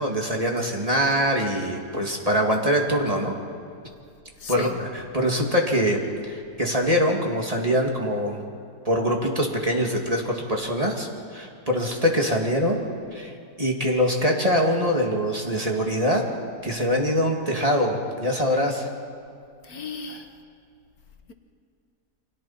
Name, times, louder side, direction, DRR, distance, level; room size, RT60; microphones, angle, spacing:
voice 1, 0.0-3.3 4.5-8.4 8.8-12.8 13.1-13.3 13.6-16.2 16.6-18.9 20.1-20.2, equal, 20° right, 2.5 m, -24 dB
voice 2, 4.4-4.8 19.6-20.3, left 4 dB, 70° left, 1.7 m, -34 dB
29.5 x 25.0 x 4.4 m
omnidirectional pair, 1.7 m